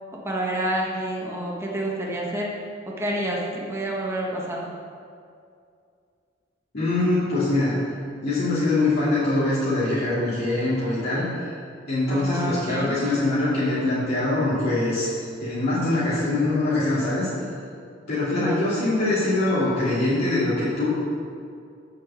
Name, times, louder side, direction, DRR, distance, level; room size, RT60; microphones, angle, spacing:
voice 1, 0.2-2.5 3.0-4.7 12.1-13.0 18.3-18.7, right 1 dB, 15° right, -3 dB, 1.3 m, -28 dB
voice 2, 6.7-7.7 8.2-11.3 11.9-15.1 15.4-17.3 18.1-20.9, left 2 dB, 55° left, -11 dB, 2.7 m, -23 dB
7.6 x 6.4 x 7.0 m, 2.3 s
head